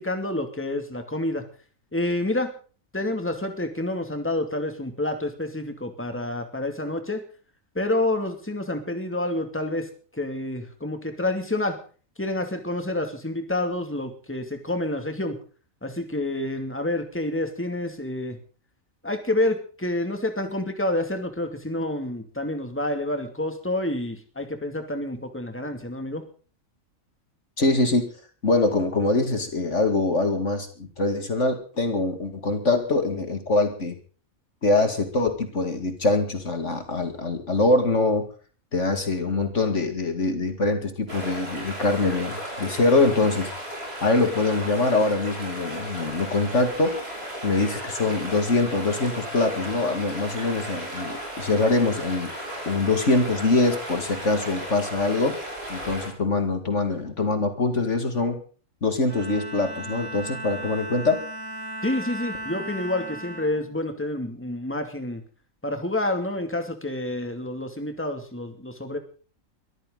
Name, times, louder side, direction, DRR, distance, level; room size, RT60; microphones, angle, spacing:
voice 1, 0.0-1.4 1.9-2.5 2.9-7.2 7.7-11.8 12.2-15.4 15.8-18.4 19.0-26.2 61.8-65.2 65.6-69.0, left 1 dB, 10° left, 6 dB, 2.6 m, -28 dB
voice 2, 27.6-28.1 28.4-34.0 34.6-38.3 38.7-43.5 44.0-47.0 47.4-52.3 52.7-55.4 55.7-58.4 58.8-61.2, left 2 dB, 60° left, 7 dB, 2.6 m, -23 dB
sound 1, 41.1-56.1, equal, 45° right, 7.9 m, -35 dB
Bowed string instrument, 59.0-64.6, right 1 dB, 80° right, 7.8 m, -37 dB
22.5 x 14.5 x 4.0 m, 0.40 s
omnidirectional pair, 1.4 m